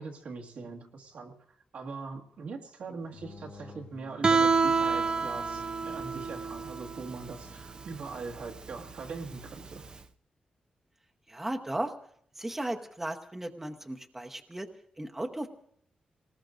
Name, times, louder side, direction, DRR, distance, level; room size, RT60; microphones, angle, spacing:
voice 1, 0.0-1.3 1.7-9.8, right 4 dB, 75° right, 0 dB, 1.8 m, -41 dB
sound 1, 3.0-8.5, left 4 dB, 40° left, 1.5 m, -50 dB
Guitar, 4.2-9.9, right 5 dB, 40° right, 0.6 m, -29 dB
voice 2, 11.3-11.9 12.3-14.7 15.0-15.5, right 1 dB, 10° right, 4 dB, 0.9 m, -35 dB
28.5 x 19.5 x 2.6 m, 0.67 s
wide cardioid pair, 115°, 2 cm